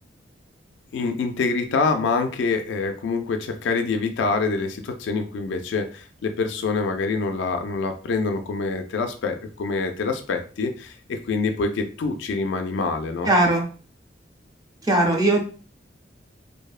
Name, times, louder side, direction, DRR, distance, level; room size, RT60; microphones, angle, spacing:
voice 1, 0.9-13.3, left 4 dB, 85° left, 6 dB, 0.3 m, -26 dB
voice 2, 13.3-13.6 14.9-15.4, right 2 dB, 20° right, 2 dB, 0.5 m, -18 dB
2.6 x 2.0 x 2.3 m, 0.39 s
head